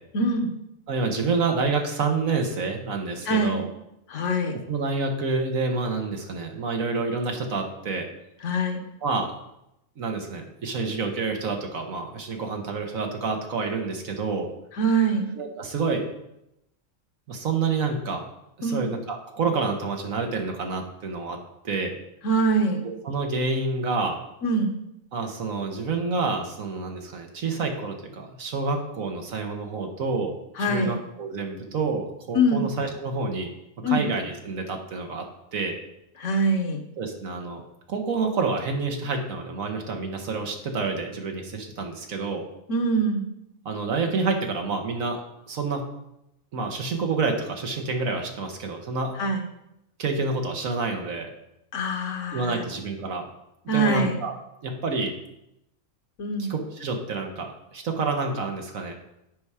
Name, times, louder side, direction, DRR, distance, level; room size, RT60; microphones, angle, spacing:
voice 1, 0.1-0.5 3.3-3.6 4.1-4.6 8.4-8.8 14.8-15.3 18.6-18.9 22.2-22.8 24.4-24.7 30.6-31.0 32.3-32.6 33.8-34.0 36.2-36.8 42.7-43.3 49.2-49.4 51.7-52.7 53.7-54.2 56.2-56.5, right 1 dB, 65° left, 5 dB, 1.3 m, -23 dB
voice 2, 0.9-3.7 4.7-8.1 9.0-9.3 10.0-14.5 15.3-16.0 17.3-18.2 18.6-21.4 21.6-21.9 22.8-24.2 25.1-30.3 30.6-33.5 33.9-35.2 35.5-35.8 37.0-37.6 37.9-42.4 43.6-45.2 45.5-45.8 46.5-49.1 50.0-51.3 52.3-53.2 53.6-54.3 54.6-55.1 56.5-59.0, right 4 dB, 85° right, 3 dB, 1.7 m, -28 dB
8.4 x 5.7 x 4.8 m, 0.84 s
omnidirectional pair, 1.4 m